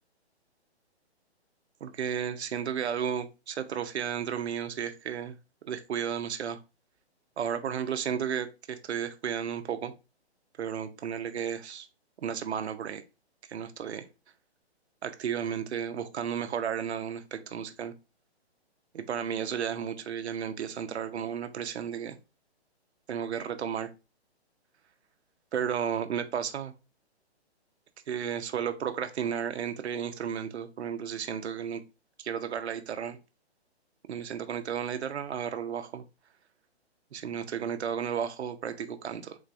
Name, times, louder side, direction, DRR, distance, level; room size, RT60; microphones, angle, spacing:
voice 1, 1.8-5.4 5.6-6.6 7.4-9.9 10.6-11.9 12.2-13.0 13.5-14.1 15.0-17.9 18.9-22.2 23.1-23.9 25.5-26.7 28.1-31.8 32.2-33.2 34.1-36.0 37.1-39.4, right 8 dB, 80° right, 9 dB, 0.7 m, -33 dB
3.9 x 3.3 x 2.5 m, 0.27 s
hypercardioid pair, 155°, 33 cm